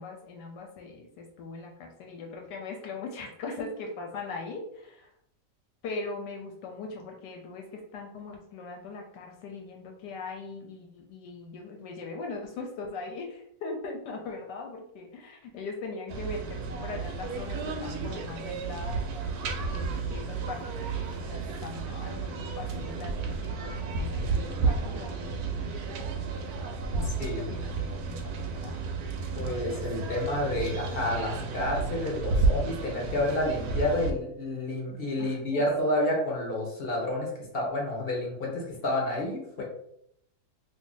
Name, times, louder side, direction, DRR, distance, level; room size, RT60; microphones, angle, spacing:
voice 1, 0.0-5.1 5.8-19.4 19.7-25.9 27.0-28.8 35.2-35.6 39.6-39.7, left 3 dB, 75° left, 2 dB, 1.1 m, -40 dB
sound 1, 16.1-34.1, right 4 dB, 75° right, 0.9 m, -32 dB
voice 2, 27.0-27.5 29.3-39.6, left 1 dB, 50° left, -2 dB, 0.7 m, -30 dB
2.7 x 2.6 x 3.8 m, 0.72 s
omnidirectional pair, 2.0 m